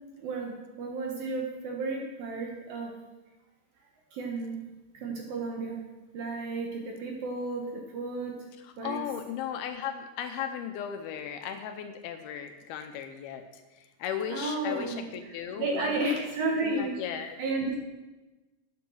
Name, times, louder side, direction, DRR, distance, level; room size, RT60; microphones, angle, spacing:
voice 1, 0.2-2.9 4.1-4.7 4.9-5.8 6.1-8.3 8.8-9.0 14.3-17.0 17.4-17.8, right 3 dB, 65° right, 0 dB, 2.7 m, -33 dB
voice 2, 8.6-16.2 16.6-17.4, left 8 dB, 75° left, 7 dB, 2.4 m, -36 dB
10.0 x 8.7 x 6.3 m, 1.1 s
omnidirectional pair, 4.9 m